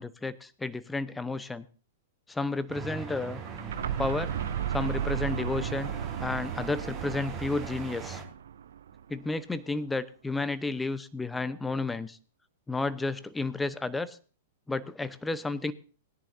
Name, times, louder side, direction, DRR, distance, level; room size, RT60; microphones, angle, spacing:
voice 1, 0.0-1.6 2.3-3.4 4.0-4.3 4.7-5.9 6.2-8.2 9.1-12.2 12.7-14.2 14.7-15.7, left 3 dB, 10° left, 15 dB, 0.8 m, -32 dB
sound 1, 2.7-8.2, right 6 dB, 35° right, 3.9 m, -40 dB
sound 2, 3.4-9.2, right 9 dB, 65° right, 0.6 m, -35 dB
20.5 x 10.5 x 2.7 m, 0.39 s
figure-of-eight pair, 105°, 0 cm